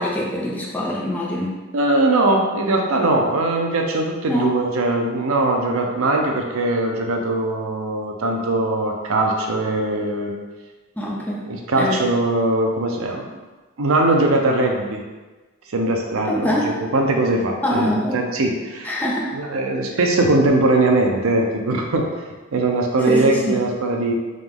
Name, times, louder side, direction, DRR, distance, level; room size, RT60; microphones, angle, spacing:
voice 1, 0.0-1.5 4.3-4.5 11.0-11.4 11.8-12.0 16.3-16.7 17.6-18.1 18.8-19.3 23.1-23.6, equal, 5° left, -5 dB, 0.6 m, -23 dB
voice 2, 1.7-10.3 11.0-11.2 11.5-13.3 13.8-15.0 15.7-18.9 19.3-22.1 22.5-24.1, right 2 dB, 65° right, 2 dB, 0.6 m, -20 dB
3.8 x 2.9 x 3.6 m, 1.3 s
head